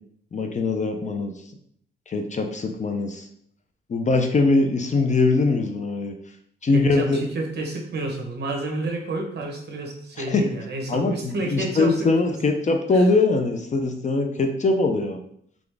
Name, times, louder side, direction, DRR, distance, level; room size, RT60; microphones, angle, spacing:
voice 1, 0.3-1.3 2.1-3.3 3.9-6.1 6.6-7.2 10.2-10.5 10.9-15.2, left 3 dB, 35° left, 4 dB, 0.5 m, -22 dB
voice 2, 6.7-12.1 12.9-13.0, right 2 dB, 55° right, 1 dB, 1.1 m, -30 dB
3.9 x 3.5 x 3.4 m, 0.67 s
wide cardioid pair, 130°, 21 cm